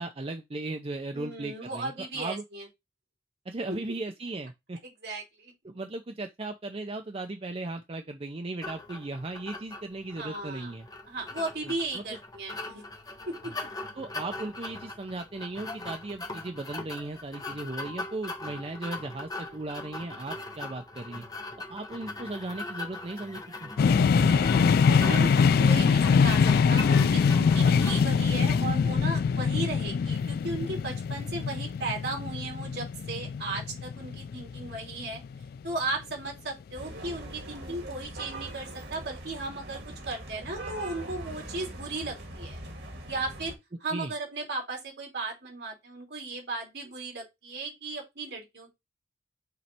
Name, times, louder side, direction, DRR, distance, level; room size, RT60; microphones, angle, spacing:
voice 1, 0.0-2.4 3.5-4.8 5.6-10.9 11.6-12.0 14.0-21.2 21.7-24.7 43.9-44.1, right 2 dB, 35° right, 0.6 m, -37 dB
voice 2, 1.1-2.7 3.7-3.8 5.0-5.5 10.2-10.7 11.1-12.8 13.3-13.5 24.9-25.3 25.6-35.2 35.6-42.6 43.1-43.5 43.8-48.7, right 2 dB, 70° right, 2.8 m, -36 dB
sound 1, 8.6-28.0, left 2 dB, 20° left, 0.9 m, -40 dB
sound 2, 23.8-35.6, left 6 dB, 60° left, 0.3 m, -23 dB
sound 3, 36.7-43.5, right 1 dB, 85° right, 2.0 m, -42 dB
6.7 x 3.3 x 4.3 m
head